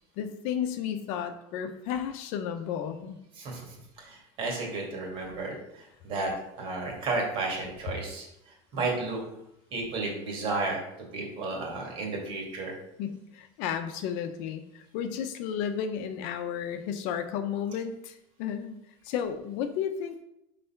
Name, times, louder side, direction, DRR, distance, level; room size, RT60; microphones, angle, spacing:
voice 1, 0.2-3.2 13.0-18.8 19.0-20.2, left 8 dB, 65° left, 8 dB, 0.8 m, -33 dB
voice 2, 4.0-8.3 8.7-9.2 9.7-10.8 11.1-12.7, right 3 dB, 45° right, 0 dB, 2.4 m, -32 dB
5.6 x 4.2 x 5.8 m, 0.84 s
cardioid pair, 145°, 13 cm